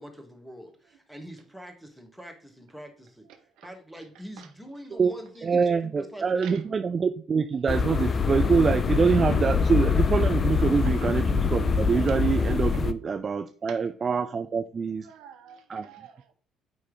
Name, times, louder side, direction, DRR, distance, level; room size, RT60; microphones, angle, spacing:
voice 1, 0.0-3.3 3.6-6.9, equal, ahead, 1.5 m, -44 dB
voice 2, 3.3-3.7 4.4-4.5 6.4-6.6 12.7-12.8 13.7-13.8 15.0-16.3, right 9 dB, 60° right, 0.7 m, -48 dB
voice 3, 5.4-15.1 15.7-15.8, right 5 dB, 35° right, 0.4 m, -25 dB
sound 1, 7.7-12.9, left 5 dB, 35° left, 0.4 m, -24 dB
9.0 x 3.2 x 3.7 m
figure-of-eight pair, 50°, 0 cm